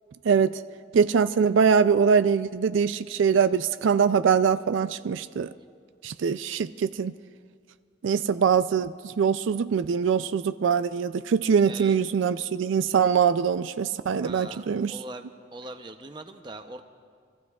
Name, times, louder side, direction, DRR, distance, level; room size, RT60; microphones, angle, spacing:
voice 1, 0.9-5.5 6.0-7.1 8.0-15.0, right 6 dB, 80° right, 12 dB, 0.4 m, -23 dB
voice 2, 11.7-12.0 14.2-15.2 15.5-16.8, right 2 dB, 25° right, 6 dB, 0.6 m, -41 dB
30.0 x 14.5 x 2.4 m, 2.1 s
head